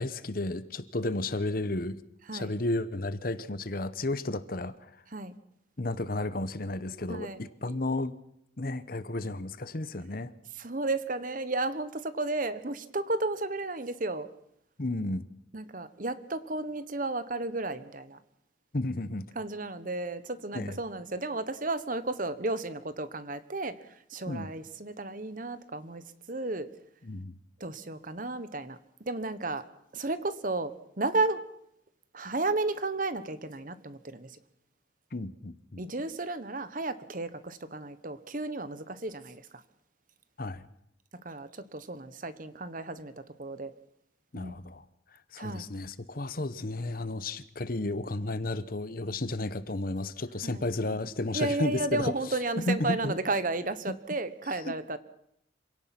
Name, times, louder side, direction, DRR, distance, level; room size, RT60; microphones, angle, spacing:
voice 1, 0.0-2.0 2.3-4.9 5.8-8.1 8.6-10.3 14.8-15.2 18.7-19.3 20.5-20.8 24.3-24.5 27.0-27.4 35.1-35.8 40.4-40.6 44.3-44.8 45.3-53.1 53.9-54.0 54.7-54.8, left 2 dB, 45° left, 14 dB, 1.0 m, -33 dB
voice 2, 7.1-7.4 10.6-14.3 15.5-18.2 19.3-23.8 24.1-26.7 27.6-29.6 29.9-31.4 32.1-34.3 35.8-39.4 41.2-43.1 43.4-43.7 44.3-44.6 45.4-45.6 50.4-51.0 51.3-55.0, right 2 dB, 45° right, 13 dB, 1.2 m, -33 dB
27.0 x 17.5 x 6.0 m, 0.75 s
head